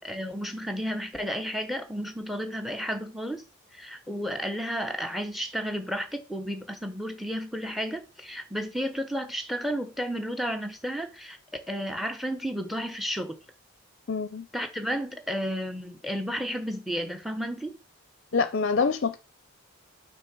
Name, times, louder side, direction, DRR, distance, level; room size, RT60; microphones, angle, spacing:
voice 1, 0.0-3.4 3.7-11.4 11.7-13.4 14.5-17.8, equal, ahead, 0.9 m, -32 dB
voice 2, 14.1-14.5 18.3-19.2, left 5 dB, 55° left, 0.5 m, -25 dB
6.3 x 3.6 x 6.0 m
head